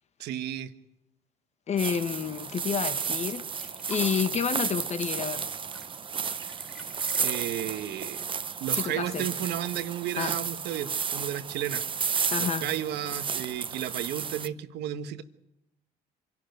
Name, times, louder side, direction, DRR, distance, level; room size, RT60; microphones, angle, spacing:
voice 1, 0.2-0.7 7.2-8.2 8.6-11.8 12.4-15.2, right 11 dB, 80° right, 1.3 m, -33 dB
voice 2, 1.7-5.5 8.7-9.3 10.2-10.4 12.3-12.7, left 7 dB, 40° left, 1.5 m, -30 dB
sound 1, 1.8-14.5, right 6 dB, 30° right, 0.8 m, -32 dB
sound 2, 3.1-9.3 9.6-9.7 10.0-10.7 11.5-11.6, equal, ahead, 3.6 m, -51 dB
25.5 x 12.0 x 9.4 m
cardioid pair, 110°, 17 cm